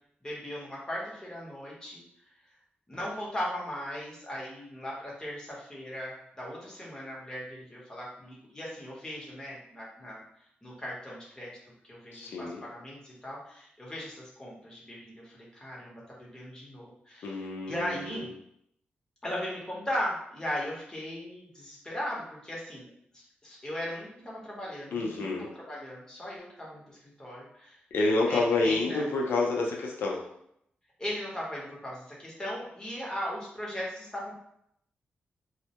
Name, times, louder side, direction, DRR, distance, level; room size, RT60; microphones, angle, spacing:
voice 1, 0.2-2.0 2.9-10.2 10.6-11.5 11.8-17.4 17.7-18.3 19.2-22.9 23.1-27.8 28.3-29.0 31.0-34.3, equal, 20° left, -5 dB, 0.9 m, -38 dB
voice 2, 12.1-12.6 17.2-18.3 24.9-25.5 27.9-30.2, left 3 dB, 90° left, -1 dB, 0.5 m, -28 dB
2.1 x 2.1 x 2.8 m, 0.74 s
cardioid pair, 90°, 4 cm